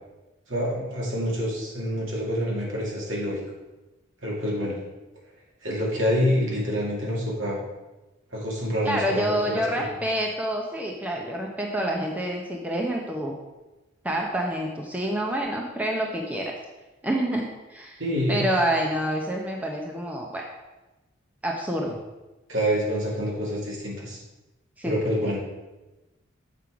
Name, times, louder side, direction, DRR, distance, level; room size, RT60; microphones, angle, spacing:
voice 1, 0.5-3.4 4.2-4.8 5.6-7.6 8.3-9.8 18.0-18.5 22.5-24.2 24.8-25.4, equal, 65° right, -4 dB, 2.4 m, -27 dB
voice 2, 8.8-13.3 14.0-16.5 17.0-18.0 18.3-20.5 21.4-22.0 24.8-24.9 25.2-25.3, right 1 dB, 5° right, -1 dB, 0.7 m, -27 dB
7.6 x 5.5 x 4.8 m, 1.1 s
head